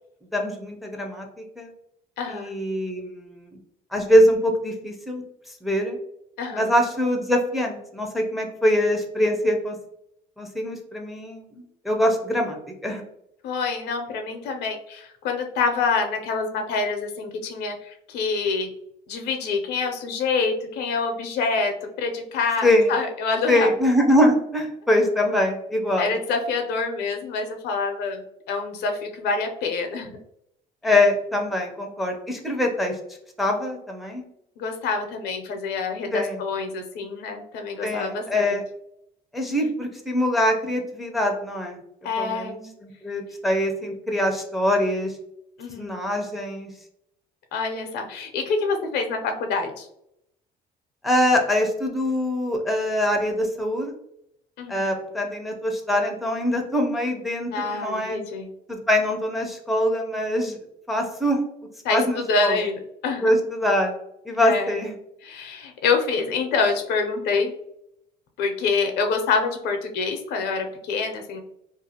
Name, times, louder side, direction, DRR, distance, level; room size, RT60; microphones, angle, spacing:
voice 1, 0.3-1.7 2.3-3.6 3.9-5.2 5.6-6.0 6.5-9.8 10.4-12.6 12.8-13.0 22.6-22.9 23.5-26.1 30.8-33.0 33.4-34.2 36.1-36.4 37.8-38.6 39.3-41.8 42.2-42.6 42.8-45.1 45.7-46.7 51.0-53.9 54.7-58.2 58.7-60.6 60.9-61.4 61.9-62.6 63.2-63.9 64.3-64.9, left 1 dB, ahead, 2 dB, 0.5 m, -23 dB
voice 2, 2.2-2.5 6.4-6.7 13.4-18.7 19.1-21.7 22.0-23.7 26.0-28.2 28.5-30.2 34.6-38.6 42.0-42.7 45.6-46.0 47.5-49.9 54.6-54.9 57.5-58.5 61.8-63.4 64.4-64.8 65.2-67.5 68.4-71.4, left 4 dB, 75° left, 4 dB, 0.6 m, -26 dB
2.5 x 2.3 x 2.7 m, 0.77 s
cardioid pair, 110°, 17 cm